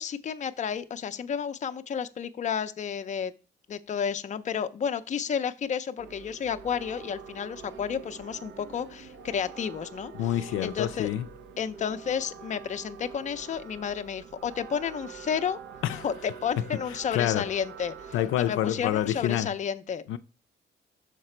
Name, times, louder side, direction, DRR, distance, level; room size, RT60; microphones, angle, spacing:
voice 1, 0.0-3.3 3.7-10.1 10.6-11.1 11.6-15.6 16.0-20.0, left 7 dB, 40° left, 0.5 m, -31 dB
sound 1, 6.0-19.4, right 6 dB, 70° right, 0.7 m, -45 dB
voice 2, 10.2-11.3 15.8-16.1 16.7-16.8 17.1-17.5 18.1-19.5 20.1-20.2, left 12 dB, 85° left, 0.4 m, -27 dB
6.6 x 3.9 x 4.4 m
cardioid pair, 90°, 20 cm